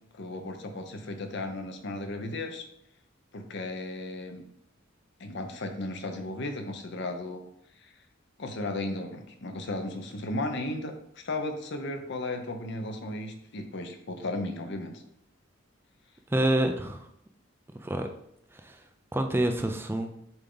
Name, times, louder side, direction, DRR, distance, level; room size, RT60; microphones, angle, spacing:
voice 1, 0.1-2.6 3.3-4.4 5.2-7.4 7.8-7.9 8.4-15.0, left 2 dB, 60° left, 5 dB, 0.8 m, -35 dB
voice 2, 16.3-17.0 17.8-18.1 18.7-18.8 19.1-20.2, right 1 dB, 10° right, 5 dB, 0.4 m, -27 dB
7.0 x 3.6 x 3.9 m, 0.75 s
head